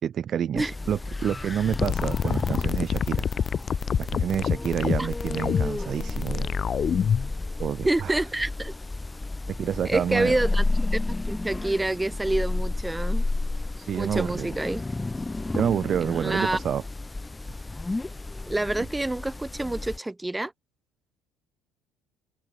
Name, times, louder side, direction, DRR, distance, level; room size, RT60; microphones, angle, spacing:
voice 1, 0.0-3.2 4.0-6.5 7.6-8.2 9.5-10.4 13.8-14.5 15.5-16.8, right 9 dB, 50° right, 2.7 m, -28 dB
sound 1, 0.6-20.0, left 2 dB, 15° left, 4.5 m, -32 dB
sound 2, 1.7-7.3, left 7 dB, 40° left, 1.0 m, -26 dB
voice 2, 7.9-8.7 9.8-10.6 10.9-13.2 13.9-14.8 16.0-16.6 18.5-20.5, right 2 dB, 10° right, 5.5 m, -27 dB
supercardioid pair, 95°, 0 cm